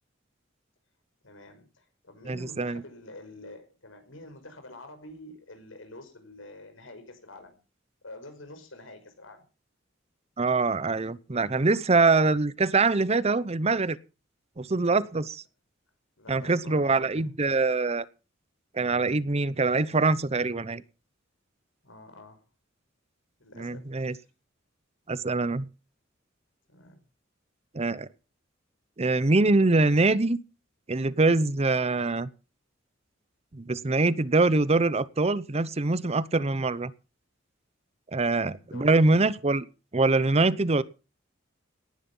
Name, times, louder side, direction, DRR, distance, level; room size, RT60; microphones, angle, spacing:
voice 1, 1.2-7.6 8.0-9.4 16.2-17.2 21.8-22.4 23.4-24.3 26.7-27.0 38.6-39.1, left 2 dB, 90° left, 7 dB, 5.6 m, -47 dB
voice 2, 2.3-2.8 10.4-14.0 14.6-15.4 16.3-18.1 18.7-20.8 23.6-24.1 25.1-25.6 27.7-28.1 29.0-30.4 30.9-32.3 33.5-36.9 38.1-39.7 39.9-40.8, right 3 dB, 30° right, 18 dB, 0.7 m, -24 dB
18.0 x 11.0 x 5.5 m, 0.34 s
head